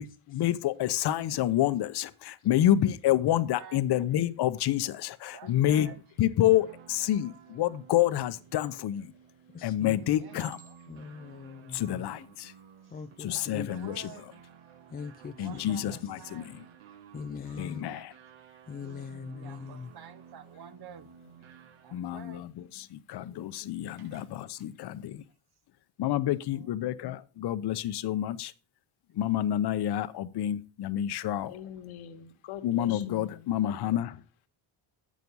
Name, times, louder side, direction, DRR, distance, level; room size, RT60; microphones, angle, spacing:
voice 1, 0.0-5.9 6.2-9.1 9.6-10.6 11.7-12.5 13.2-14.1 15.4-16.6 17.6-18.1 21.9-25.2 26.0-28.5 29.1-31.6 32.6-34.2, left 12 dB, 55° left, 0.7 m, -28 dB
voice 2, 2.4-2.9 5.4-6.0 6.4-6.5 9.8-10.1 13.2-13.6 15.5-15.7 18.5-19.4 20.5-20.7 21.1-21.6 22.8-23.8 31.5-33.2 33.4-33.5, left 9 dB, 80° left, 1.5 m, -48 dB
voice 3, 5.3-6.0 9.9-10.4 12.8-14.2 15.2-16.5 17.6-18.1 18.8-21.1 21.8-22.4 24.0-24.3 24.6-24.7 26.5-26.7, right 8 dB, 50° right, 0.9 m, -50 dB
sound 1, 5.5-22.2, right 8 dB, 80° right, 1.3 m, -54 dB
voice 4, 9.5-10.0 10.9-12.0 12.9-13.7 14.9-16.0 17.1-17.9 18.7-19.9, left 5 dB, 20° left, 0.4 m, -41 dB
Chink clink, 10.3-11.1 11.9-12.1, right 5 dB, 15° right, 1.3 m, -53 dB
8.3 x 6.3 x 5.2 m
cardioid pair, 120°, 49 cm